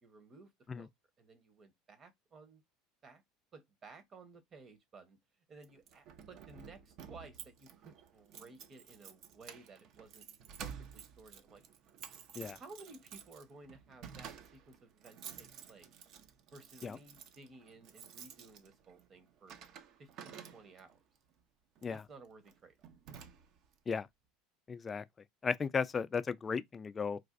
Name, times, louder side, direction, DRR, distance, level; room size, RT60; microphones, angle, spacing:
voice 1, 0.0-0.9 1.2-2.6 3.0-3.2 3.5-5.2 5.5-10.3 10.6-11.6 12.6-16.0 16.5-19.6 20.0-21.0 21.9-22.8, right 3 dB, 35° right, 0.9 m, -56 dB
Keys jangling, 5.6-21.0 21.7-22.0 22.5-22.6 22.8-23.7, right 7 dB, 55° right, 0.5 m, -52 dB
voice 2, 24.7-25.0 25.4-27.2, left 5 dB, 25° left, 0.3 m, -35 dB
4.0 x 2.5 x 2.4 m
supercardioid pair, 95°, 0 cm